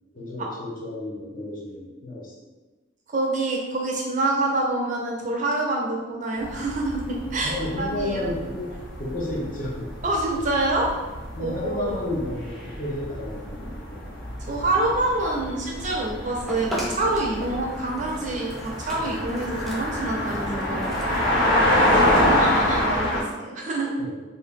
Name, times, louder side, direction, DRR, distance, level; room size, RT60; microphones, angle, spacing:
voice 1, 0.1-2.3 7.4-9.9 11.3-14.1 18.9-19.2 21.1-21.4 22.2-22.6 24.0-24.2, left 1 dB, 45° left, -4 dB, 0.8 m, -32 dB
voice 2, 3.1-8.2 10.0-10.9 11.4-12.0 14.5-21.1 21.9-23.9, right 2 dB, 40° right, -2 dB, 0.6 m, -26 dB
sound 1, 6.4-23.2, left 1 dB, 65° left, 1.2 m, -27 dB
sound 2, 16.5-21.5, equal, ahead, 0.5 m, -37 dB
2.8 x 2.8 x 3.7 m, 1.2 s
head